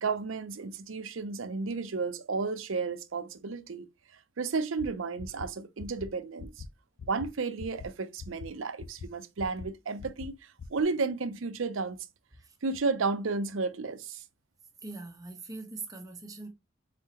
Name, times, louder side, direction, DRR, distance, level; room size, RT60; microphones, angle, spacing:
voice 1, 0.0-3.9 4.4-6.6 7.1-12.0 12.6-14.2, right 4 dB, 85° right, 0.6 m, -32 dB
sound 1, 4.8-4.9 5.2-5.5 5.8-6.1 6.4-6.7 7.0-7.3 7.6-7.9 8.2-8.5 8.8-9.1 9.4-9.7 10.0-10.3 10.6-10.8, left 6 dB, 75° left, 0.5 m, -42 dB
voice 2, 14.8-16.5, right 3 dB, 20° right, 0.9 m, -42 dB
4.1 x 3.7 x 2.9 m
head